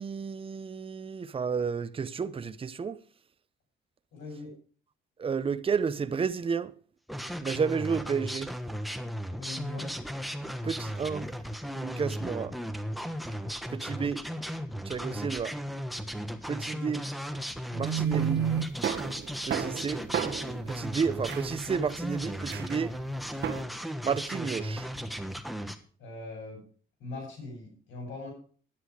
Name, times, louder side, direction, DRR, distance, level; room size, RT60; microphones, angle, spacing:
voice 1, 0.0-3.0 5.2-6.7 7.4-8.5 10.6-11.3 11.8-12.5 13.7-14.2 14.8-15.5 16.5-17.0 17.7-18.4 19.4-20.0 20.7-22.9 24.0-24.9, right 6 dB, 30° right, 0.6 m, -31 dB
voice 2, 4.1-4.5 9.4-9.9 26.0-26.6 27.0-28.3, left 3 dB, 80° left, 7.8 m, -40 dB
sound 1, 7.1-25.8, equal, ahead, 1.2 m, -36 dB
sound 2, 17.7-23.6, right 8 dB, 60° right, 1.4 m, -33 dB
10.5 x 10.0 x 4.8 m
cardioid pair, 90°, 20 cm